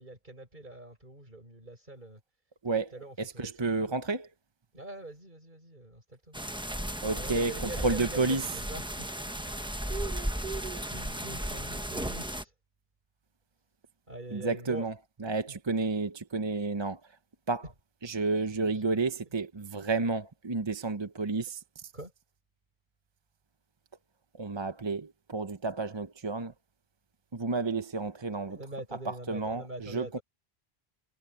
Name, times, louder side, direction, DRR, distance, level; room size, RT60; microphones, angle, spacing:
voice 1, 0.0-2.2 2.9-3.9 4.7-6.4 7.1-8.2 8.5-9.1 9.4-9.5 9.9-12.5 14.1-14.8 15.5-15.6 18.5-19.0 21.9-22.1 28.5-30.2, right 2 dB, 50° right, 7.2 m, -43 dB
voice 2, 2.6-4.3 7.0-8.6 14.3-17.2 17.5-17.7 18.0-21.9 24.3-26.5 27.3-28.6 28.9-30.2, right 3 dB, 30° right, 0.8 m, -31 dB
sound 1, 6.3-12.4, equal, 5° right, 1.0 m, -35 dB
omnidirectional pair, 1.1 m